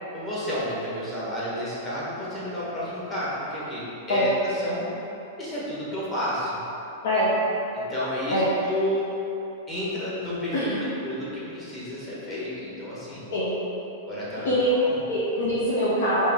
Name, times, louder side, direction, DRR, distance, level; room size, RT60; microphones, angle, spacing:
voice 1, 0.1-4.9 5.4-6.5 7.7-9.1 9.7-10.7 11.0-13.2 14.1-14.5 14.8-15.0, equal, 15° left, -9 dB, 1.2 m, -31 dB
voice 2, 10.5-10.9 13.3-13.5 14.4-14.7 15.1-16.3, equal, 75° left, -9 dB, 1.0 m, -24 dB
4.6 x 3.0 x 3.6 m, 3.0 s
supercardioid pair, 160°, 0 cm